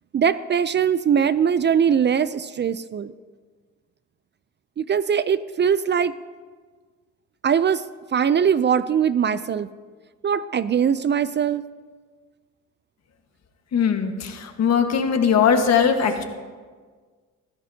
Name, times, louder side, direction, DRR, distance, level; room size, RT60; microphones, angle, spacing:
voice 1, 0.1-3.1 4.8-6.1 7.4-7.8 8.1-9.7 10.2-11.6, right 7 dB, 35° right, 15 dB, 0.4 m, -21 dB
voice 2, 13.7-16.2, left 7 dB, 60° left, 5 dB, 1.5 m, -20 dB
21.5 x 15.0 x 2.8 m, 1.5 s
cardioid pair, 90°, 30 cm